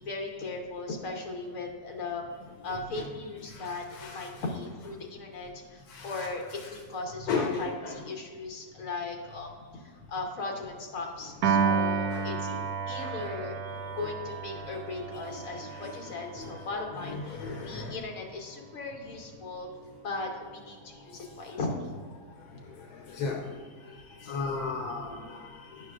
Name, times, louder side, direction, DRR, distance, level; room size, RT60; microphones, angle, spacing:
voice 1, 0.0-2.2 2.6-12.5 12.9-13.6 13.9-19.7 20.0-21.9 22.5-22.6, left 3 dB, 65° left, 1 dB, 1.4 m, -37 dB
voice 2, 3.5-4.3 5.9-6.3 6.6-6.8 7.3-8.1 12.1-12.6 13.0-13.3 14.0-14.1 15.7-16.6 17.0-18.0 23.0-23.4 23.9-25.9, left 4 dB, 85° left, 1 dB, 1.2 m, -36 dB
Piano, 11.4-17.8, right 6 dB, 85° right, 1.1 m, -32 dB
10.0 x 5.5 x 2.4 m, 1.5 s
omnidirectional pair, 1.6 m